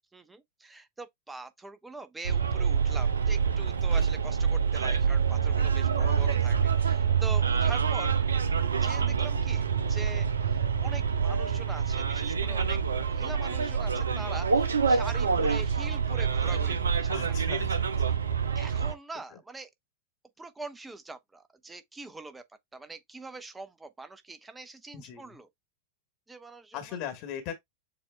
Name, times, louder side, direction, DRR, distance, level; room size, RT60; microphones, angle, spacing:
voice 1, 0.1-8.1 8.8-12.8 13.1-17.4 18.1-18.2 18.5-19.7 20.4-22.4 22.7-25.5 26.3-27.0, right 3 dB, 10° right, 0.8 m, -43 dB
Bus, 2.2-18.9, right 6 dB, 70° right, 0.6 m, -26 dB
voice 2, 6.0-6.4 17.1-17.8 24.9-25.4 26.7-27.5, left 9 dB, 45° left, 1.2 m, -39 dB
7.0 x 2.5 x 2.2 m
figure-of-eight pair, 90°, 0 cm